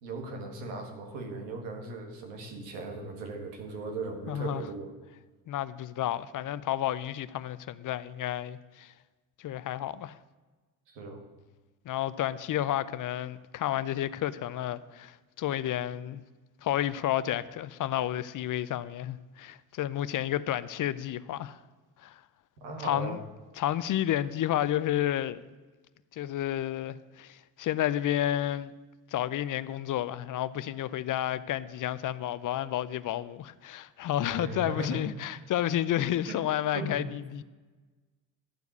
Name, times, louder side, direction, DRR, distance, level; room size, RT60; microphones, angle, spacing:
voice 1, 0.0-4.9 10.9-11.3 22.6-23.2 34.3-35.4 36.3-36.4 36.7-37.0, right 2 dB, 85° right, 1.8 m, -38 dB
voice 2, 4.3-4.6 5.5-8.9 9.4-10.2 11.9-16.2 16.6-21.6 22.0-22.2 22.8-23.2 23.6-25.4 26.1-28.7 29.1-37.4, left 12 dB, 45° left, 0.5 m, -31 dB
12.0 x 4.7 x 8.0 m
hypercardioid pair, 65°, 45 cm